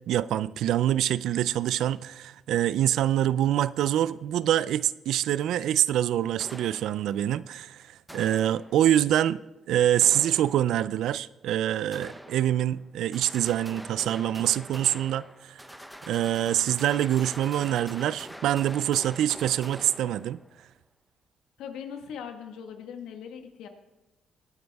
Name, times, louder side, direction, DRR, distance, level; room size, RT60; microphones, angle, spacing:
voice 1, 0.1-9.4 9.7-15.6 16.1-20.4, right 11 dB, 80° right, 0.4 m, -25 dB
sound 1, 6.4-7.4 8.1-9.1 10.0-11.0 11.9-12.8 13.1-20.6, equal, ahead, 0.7 m, -45 dB
voice 2, 21.6-23.7, left 7 dB, 85° left, 1.5 m, -40 dB
19.5 x 9.3 x 3.5 m
cardioid pair, 90°, 0 cm